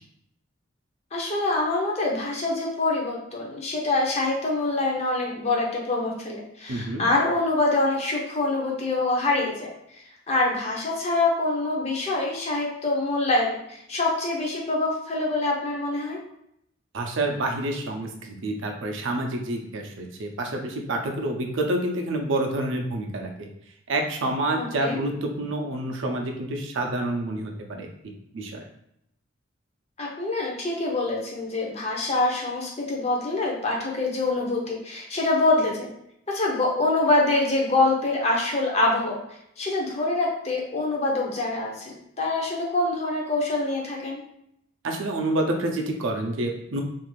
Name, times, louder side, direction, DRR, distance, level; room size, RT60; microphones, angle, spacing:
voice 1, 1.1-9.7 10.3-16.2 24.6-25.0 30.0-35.9 36.3-39.2 39.6-44.2, left 2 dB, 30° left, -2 dB, 0.6 m, -25 dB
voice 2, 6.7-7.0 16.9-23.5 23.9-28.6 44.8-46.8, right 1 dB, 65° right, 2 dB, 0.5 m, -28 dB
2.5 x 2.4 x 3.1 m, 0.77 s
head